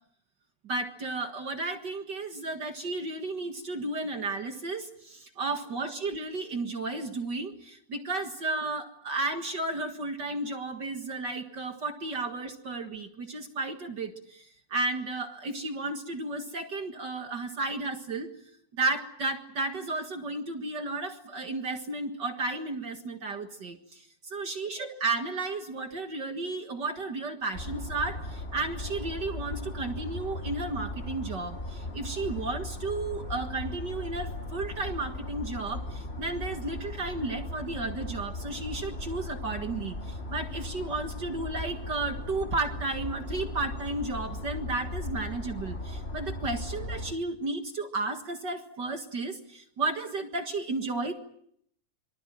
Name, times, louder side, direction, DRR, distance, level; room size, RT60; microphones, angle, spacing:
voice 1, 0.6-18.3 18.7-51.1, right 3 dB, 45° right, 6 dB, 1.5 m, -33 dB
sound 1, 27.5-47.1, left 2 dB, 20° left, 2.0 m, -37 dB
26.5 x 24.0 x 7.6 m, 0.69 s
omnidirectional pair, 4.2 m